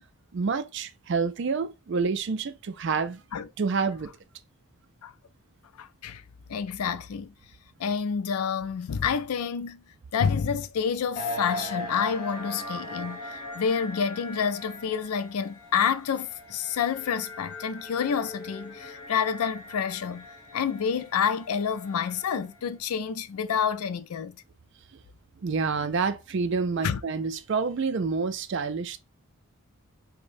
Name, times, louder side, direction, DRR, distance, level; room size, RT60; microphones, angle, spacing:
voice 1, 0.3-3.2 3.6-4.1 25.4-29.0, right 5 dB, 55° right, 0.4 m, -28 dB
voice 2, 5.8-6.2 6.5-7.3 7.8-9.8 10.1-20.3 20.5-24.4 26.8-27.0, left 7 dB, 85° left, 0.4 m, -28 dB
sound 1, 11.1-22.6, left 2 dB, 35° left, 1.2 m, -40 dB
4.8 x 2.2 x 2.6 m
head